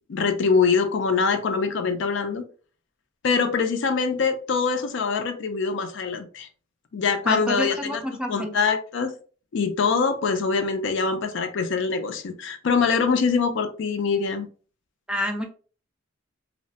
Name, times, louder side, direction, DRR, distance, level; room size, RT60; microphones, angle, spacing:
voice 1, 0.1-2.5 3.2-6.5 6.9-8.0 8.3-9.1 9.5-14.5, left 5 dB, 65° left, 8 dB, 0.4 m, -24 dB
voice 2, 7.2-8.5 15.1-15.5, equal, 5° right, 4 dB, 0.3 m, -28 dB
2.8 x 2.1 x 2.7 m, 0.40 s
head